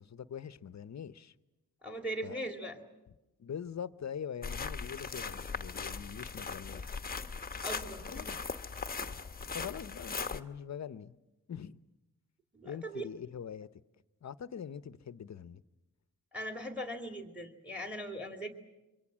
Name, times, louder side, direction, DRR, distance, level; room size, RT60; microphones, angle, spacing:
voice 1, 0.0-1.3 2.2-2.5 3.4-7.0 8.1-8.4 9.5-11.2 11.5-11.8 12.6-13.7 14.2-15.6, left 8 dB, 45° left, 0.9 m, -43 dB
voice 2, 1.8-2.8 7.6-8.3 12.5-13.0 16.3-18.5, right 1 dB, 5° right, 2.5 m, -40 dB
sound 1, 4.4-10.4, left 4 dB, 25° left, 1.0 m, -39 dB
26.5 x 23.5 x 7.4 m
cardioid pair, 85°, 38 cm